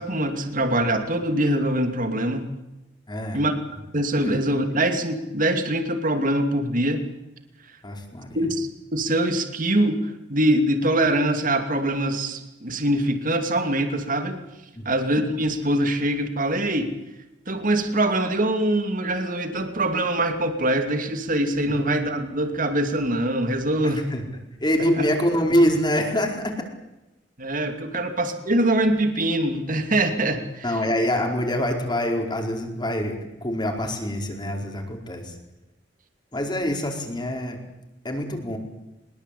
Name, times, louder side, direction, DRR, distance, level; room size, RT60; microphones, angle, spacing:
voice 1, 0.0-2.5 3.3-3.5 3.9-7.1 8.3-14.4 14.8-16.9 17.5-24.1 27.4-30.6, right 1 dB, 45° right, 7 dB, 2.7 m, -23 dB
voice 2, 3.1-3.4 4.2-4.3 7.8-8.4 14.7-15.0 23.8-24.2 24.6-26.5 30.6-35.4 36.3-37.6 38.0-38.6, equal, 25° left, 3 dB, 4.7 m, -25 dB
23.0 x 21.5 x 8.6 m, 0.96 s
head